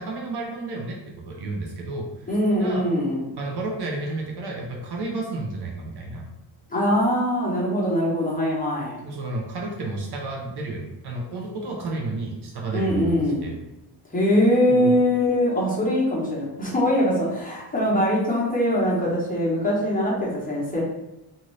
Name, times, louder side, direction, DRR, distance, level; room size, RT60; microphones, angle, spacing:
voice 1, 0.0-2.9 3.4-6.3 9.0-13.6 14.7-15.0, right 2 dB, 60° right, 0 dB, 0.7 m, -31 dB
voice 2, 2.3-3.2 6.7-9.0 12.7-13.5 14.1-20.8, equal, 20° left, -5 dB, 0.9 m, -22 dB
2.6 x 2.5 x 3.1 m, 0.96 s
cardioid pair, 125°, 44 cm